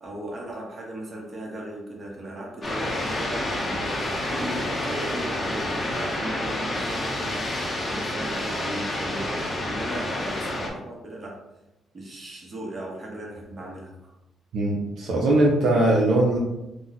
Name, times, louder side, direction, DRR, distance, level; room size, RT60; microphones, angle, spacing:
voice 1, 0.0-11.4 11.9-14.1, right 1 dB, 35° right, -2 dB, 1.0 m, -37 dB
sound 1, 2.6-10.7, left 1 dB, 25° left, 0.8 m, -29 dB
voice 2, 14.5-16.4, right 2 dB, 70° right, -3 dB, 0.5 m, -20 dB
2.4 x 2.2 x 3.9 m, 0.93 s
cardioid pair, 90°, 0 cm